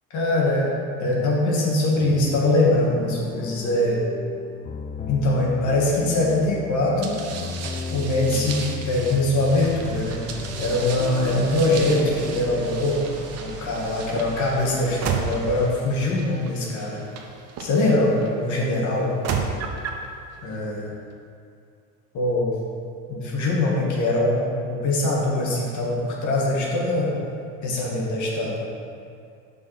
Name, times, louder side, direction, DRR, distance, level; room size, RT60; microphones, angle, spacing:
voice 1, 0.1-0.7 1.0-4.0 5.1-7.5 7.9-10.2 10.6-13.0 13.4-17.0 17.6-19.2 20.4-20.9 22.1-22.6 23.1-27.1 27.6-28.7, left 2 dB, 45° left, -3 dB, 1.9 m, -22 dB
sound 1, 2.0-13.7, left 5 dB, 20° left, 0.3 m, -35 dB
sound 2, 7.0-18.3 19.0-20.1, right 6 dB, 40° right, 0.9 m, -34 dB
sound 3, 9.5-15.7, right 4 dB, 80° right, 1.4 m, -39 dB
5.7 x 5.3 x 5.7 m, 2.4 s
hypercardioid pair, 80°, 39 cm